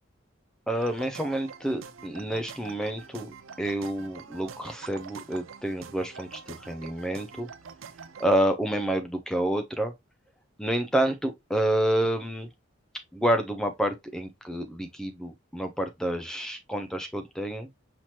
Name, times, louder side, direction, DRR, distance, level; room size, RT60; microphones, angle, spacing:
voice 1, 0.7-3.3 3.6-7.5 8.2-9.9 10.6-12.5 13.1-17.7, right 1 dB, 5° left, 0.4 m, -28 dB
sound 1, 0.8-8.3, right 6 dB, 70° right, 0.5 m, -45 dB
5.7 x 2.9 x 3.0 m
head